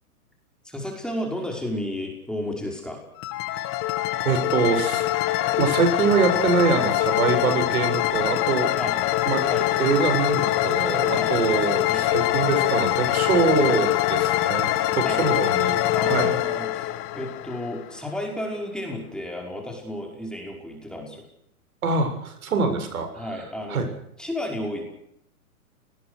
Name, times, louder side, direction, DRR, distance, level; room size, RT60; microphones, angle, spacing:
voice 1, 0.6-3.0 8.8-8.9 9.5-9.7 11.2-11.3 11.9-12.1 15.0-15.4 15.9-21.3 23.1-23.9 24.2-24.8, left 1 dB, ahead, 1 dB, 5.5 m, -32 dB
sound 1, 3.2-18.0, left 15 dB, 30° left, 1.8 m, -24 dB
voice 2, 4.2-8.7 9.3-9.5 9.8-14.7 14.9-16.3 21.8-23.3 23.7-23.9, right 5 dB, 70° right, 7 dB, 7.5 m, -24 dB
29.0 x 20.0 x 6.6 m, 0.73 s
hypercardioid pair, 135°, 44 cm